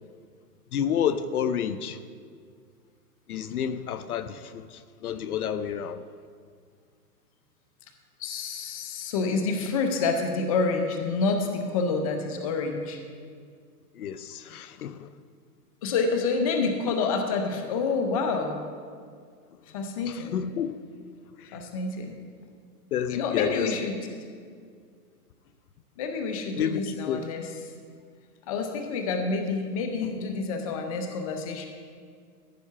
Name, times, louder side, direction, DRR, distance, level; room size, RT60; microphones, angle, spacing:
voice 1, 0.7-2.0 3.3-4.7 5.0-6.0 14.0-15.1 20.3-20.8 22.9-23.7 26.6-27.2, left 8 dB, 65° left, 0.6 m, -29 dB
voice 2, 8.2-13.0 15.8-18.6 19.7-20.4 21.5-22.2 23.1-24.1 26.0-27.7 28.5-31.6, left 4 dB, 25° left, 0.6 m, -28 dB
14.5 x 5.5 x 5.8 m
hypercardioid pair, 155°, 48 cm